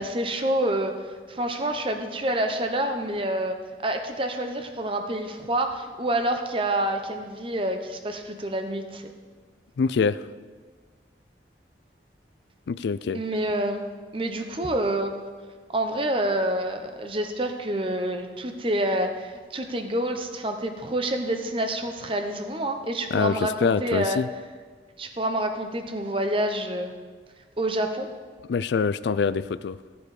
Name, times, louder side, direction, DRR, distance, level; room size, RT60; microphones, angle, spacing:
voice 1, 0.0-3.6 3.8-9.1 13.1-13.8 14.1-15.2 15.7-24.2 25.0-26.9 27.6-28.1, right 1 dB, 30° right, 6 dB, 0.8 m, -27 dB
voice 2, 9.8-10.2 12.7-13.2 23.1-24.3 28.5-29.8, left 5 dB, 75° left, 17 dB, 0.3 m, -25 dB
14.0 x 7.1 x 4.9 m, 1.5 s
head